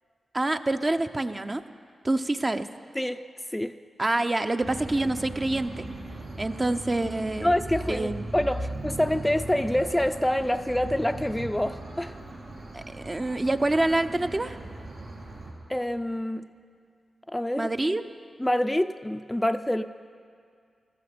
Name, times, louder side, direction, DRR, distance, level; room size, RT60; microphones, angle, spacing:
voice 1, 0.3-1.6 2.0-2.6 4.0-5.9 6.4-7.5 7.9-8.2 12.7-14.6 17.6-18.0, right 2 dB, 35° right, 8 dB, 0.7 m, -26 dB
sound 1, 4.6-15.5, right 1 dB, 85° right, 2.9 m, -38 dB
voice 2, 7.4-12.1 15.7-16.4 17.3-17.7 18.4-19.8, left 1 dB, 10° left, 10 dB, 0.4 m, -26 dB
15.5 x 13.0 x 5.2 m, 2.2 s
supercardioid pair, 40°, 0 cm